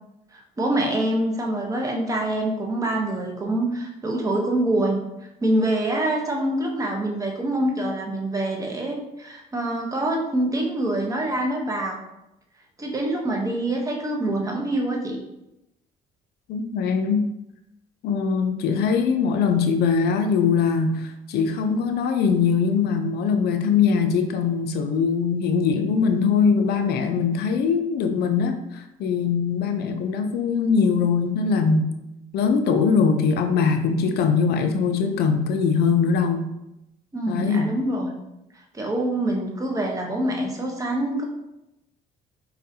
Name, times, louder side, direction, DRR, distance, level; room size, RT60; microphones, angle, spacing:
voice 1, 0.3-5.0 5.4-12.0 12.8-15.2 37.1-38.2 38.7-41.2, right 1 dB, 20° right, 0 dB, 0.9 m, -25 dB
voice 2, 16.5-17.3 18.0-31.9 32.3-36.5 37.3-37.7, left 5 dB, 70° left, 7 dB, 0.5 m, -22 dB
4.7 x 4.0 x 2.7 m, 0.89 s
cardioid pair, 110°, 17 cm